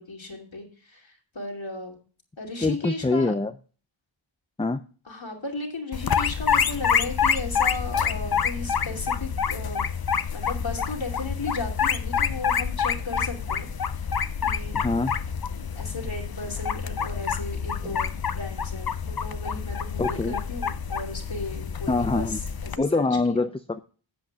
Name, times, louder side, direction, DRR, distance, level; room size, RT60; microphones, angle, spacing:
voice 1, 0.0-2.0 2.4-3.3 5.0-9.8 10.3-14.1 14.4-14.8 15.5-23.5, left 3 dB, 70° left, 0 dB, 2.9 m, -35 dB
voice 2, 2.6-3.5 4.6-4.8 14.7-15.1 17.8-18.0 20.0-20.3 21.9-22.4 22.8-23.8, left 3 dB, 15° left, 10 dB, 0.5 m, -24 dB
sound 1, 5.9-22.8, left 7 dB, 50° left, 0.6 m, -27 dB
15.5 x 7.9 x 2.3 m, 0.39 s
wide cardioid pair, 55°, 47 cm